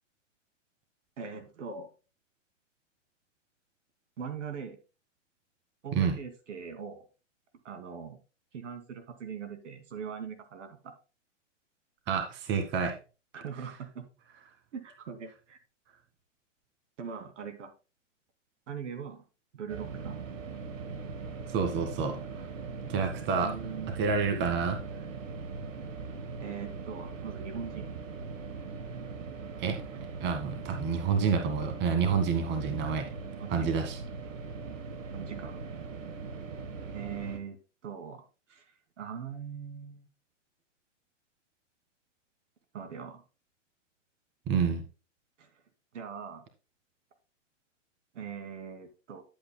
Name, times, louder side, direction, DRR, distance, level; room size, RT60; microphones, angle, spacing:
voice 1, 1.2-1.9 4.2-4.8 5.8-7.1 7.6-8.2 8.5-10.9 13.3-14.0 14.7-15.6 17.0-17.7 18.7-19.2 19.5-20.2 23.3-23.9 26.4-27.9 33.3-33.8 35.1-35.6 36.9-37.6 37.8-38.2 38.5-38.7 39.0-40.1 42.7-43.2 45.4-45.5 45.9-46.4 48.1-49.2, right 7 dB, 70° right, 7 dB, 2.5 m, -41 dB
voice 2, 12.1-13.0 21.5-22.4 22.9-23.5 24.0-24.8 29.6-29.8 30.2-33.1 33.5-34.0 44.5-44.8, right 6 dB, 30° right, 6 dB, 1.8 m, -28 dB
sound 1, 19.7-37.4, right 4 dB, 85° right, 1.7 m, -40 dB
11.5 x 8.2 x 2.2 m, 0.31 s
hypercardioid pair, 130°, 38 cm